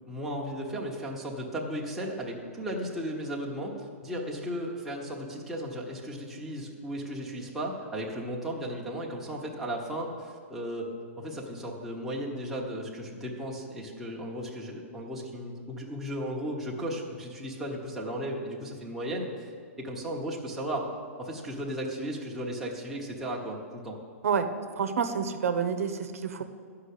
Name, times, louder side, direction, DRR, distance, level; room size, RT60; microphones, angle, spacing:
voice 1, 0.1-19.5 19.8-20.9 21.2-24.0, equal, 5° right, -4 dB, 1.1 m, -35 dB
voice 2, 24.8-26.4, right 6 dB, 85° right, 9 dB, 0.9 m, -28 dB
11.5 x 5.8 x 8.4 m, 2.1 s
hypercardioid pair, 165°, 8 cm